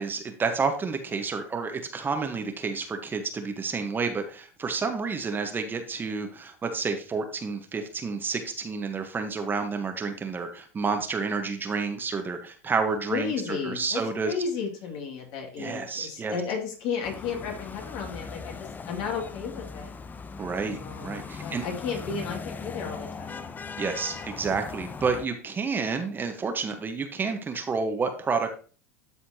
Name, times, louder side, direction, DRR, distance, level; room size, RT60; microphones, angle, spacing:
voice 1, 0.0-14.3 15.6-16.4 20.4-21.6 23.8-28.5, right 4 dB, 25° right, 6 dB, 1.2 m, -30 dB
voice 2, 13.1-19.9 20.8-23.6, left 6 dB, 60° left, 1 dB, 2.5 m, -33 dB
sound 1, 17.0-25.3, left 5 dB, 20° left, 0.6 m, -39 dB
12.5 x 4.3 x 2.9 m, 0.40 s
hypercardioid pair, 95°, 9 cm